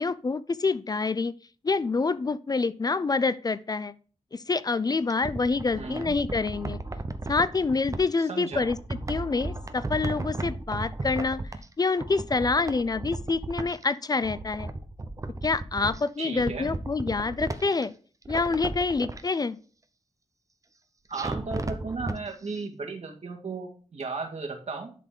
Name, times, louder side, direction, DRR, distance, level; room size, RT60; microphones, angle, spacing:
voice 1, 0.0-1.3 1.6-3.9 4.3-6.8 7.3-8.8 9.1-11.4 11.8-14.7 15.4-17.9 18.3-19.6, left 4 dB, 35° left, 15 dB, 0.4 m, -27 dB
sound 1, 4.9-8.0 8.5-11.7 12.0-13.8 14.1-16.0 16.3-17.8 18.2-19.2 21.1-22.2 22.5-22.6, right 2 dB, 30° right, 0.7 m, -35 dB
voice 2, 5.7-6.2 8.2-8.7 16.2-16.8 21.1-24.9, right 4 dB, 70° right, 1 dB, 1.9 m, -35 dB
11.0 x 4.2 x 3.7 m, 0.40 s
wide cardioid pair, 110°, 12 cm